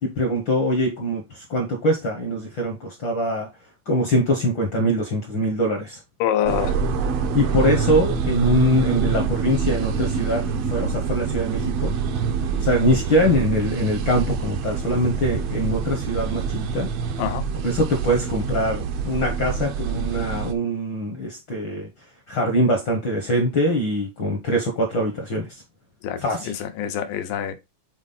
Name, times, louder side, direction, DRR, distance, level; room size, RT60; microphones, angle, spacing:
voice 1, 0.0-3.5 3.9-6.0 7.3-11.9 12.6-16.9 17.6-21.9 22.3-25.6 26.2-26.5, equal, 60° left, 1.2 m, -23 dB
voice 2, 6.2-6.8 17.2-17.4 26.0-27.5, left 10 dB, 85° left, 2.6 m, -25 dB
sound 1, 6.5-20.5, right 6 dB, 75° right, 1.5 m, -26 dB
7.3 x 4.0 x 4.0 m
omnidirectional pair, 3.8 m